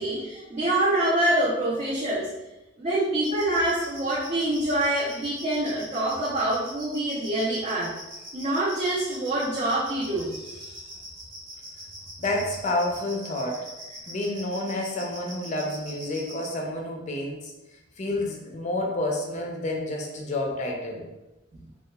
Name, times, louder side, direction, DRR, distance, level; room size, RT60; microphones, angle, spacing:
voice 1, 0.0-2.3 2.8-7.9 8.3-10.8 21.5-21.6, right 1 dB, 35° right, -8 dB, 0.5 m, -26 dB
sound 1, 3.2-16.5, right 1 dB, 70° right, 0.9 m, -42 dB
voice 2, 12.2-13.6 14.1-17.5 18.0-21.1, left 1 dB, 35° left, 1 dB, 0.4 m, -29 dB
2.7 x 2.2 x 2.2 m, 1.0 s
head